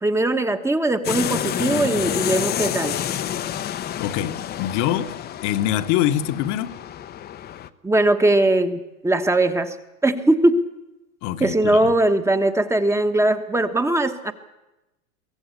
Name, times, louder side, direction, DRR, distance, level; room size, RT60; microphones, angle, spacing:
voice 1, 0.0-3.0 7.8-9.7 10.0-10.6 11.4-14.3, right 1 dB, 5° right, 1.2 m, -20 dB
sound 1, 1.0-7.7, left 10 dB, 25° left, 0.8 m, -28 dB
voice 2, 4.0-5.1 5.4-6.8 11.2-11.9, left 12 dB, 40° left, 1.3 m, -24 dB
23.0 x 16.0 x 8.3 m
hypercardioid pair, 120°, 42 cm